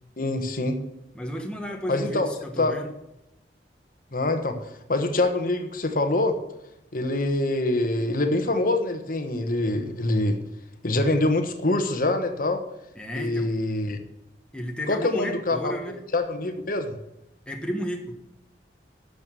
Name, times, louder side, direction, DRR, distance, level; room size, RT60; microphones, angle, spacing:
voice 1, 0.2-0.8 1.9-2.3 2.6-2.7 4.1-4.6 4.9-6.4 6.9-10.4 10.8-12.6 13.2-14.0 14.9-15.7 16.1-16.9, left 2 dB, 50° left, 6 dB, 1.3 m, -25 dB
voice 2, 1.1-2.9 12.9-13.5 14.5-16.0 17.5-18.2, equal, 5° left, 2 dB, 1.3 m, -33 dB
11.5 x 7.0 x 6.3 m, 0.87 s
head